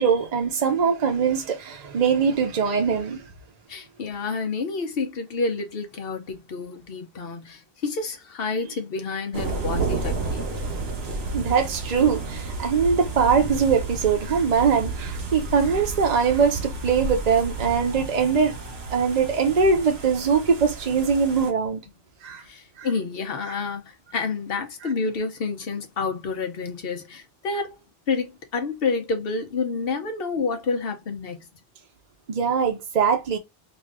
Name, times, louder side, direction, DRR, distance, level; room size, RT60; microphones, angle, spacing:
voice 1, 0.0-3.2 11.3-18.5 18.9-21.8 22.2-22.4 22.8-22.9 23.4-23.6 24.8-24.9 32.3-33.4, right 6 dB, 45° right, 0.7 m, -22 dB
voice 2, 3.7-10.6 22.4-27.7 28.1-31.5, left 4 dB, 70° left, 1.1 m, -29 dB
sound 1, 9.3-21.5, right 3 dB, 80° right, 1.1 m, -31 dB
3.0 x 2.5 x 3.5 m
omnidirectional pair, 1.0 m